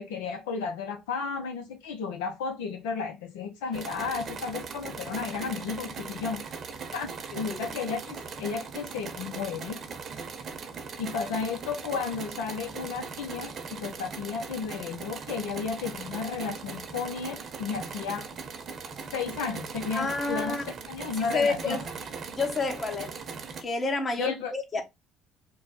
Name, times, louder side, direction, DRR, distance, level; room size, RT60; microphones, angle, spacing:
voice 1, 0.0-6.4 6.9-7.1 7.3-9.8 11.0-18.3 19.1-20.6 20.9-21.8 24.2-24.5, left 5 dB, 85° left, 0.6 m, -33 dB
sound 1, 3.7-23.6, right 5 dB, 45° right, 0.8 m, -39 dB
voice 2, 19.9-20.7 21.3-21.9 22.3-23.2 23.6-24.8, left 3 dB, 30° left, 1.1 m, -29 dB
3.3 x 2.2 x 3.9 m
supercardioid pair, 75°, 0 cm